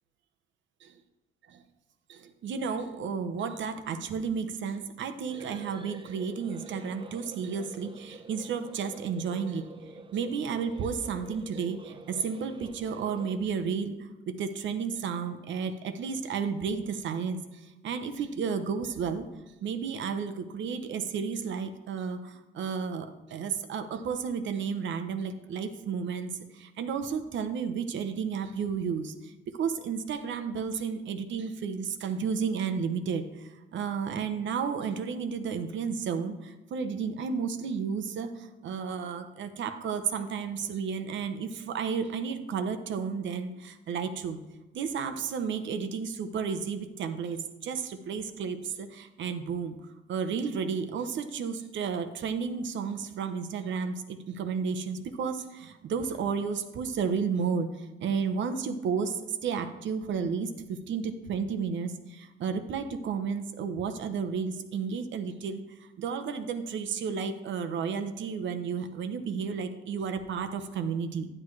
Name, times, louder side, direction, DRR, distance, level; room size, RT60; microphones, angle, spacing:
voice 1, 2.1-9.7 10.1-14.0 14.3-17.4 17.8-19.3 19.6-26.3 26.6-33.3 33.7-44.4 44.7-49.8 50.1-65.6 66.0-71.3, right 6 dB, 70° right, 9 dB, 0.9 m, -32 dB
sound 1, 5.3-13.4, right 3 dB, 25° right, 0.6 m, -47 dB
10.0 x 9.9 x 3.2 m, 1.1 s
cardioid pair, 90°, 20 cm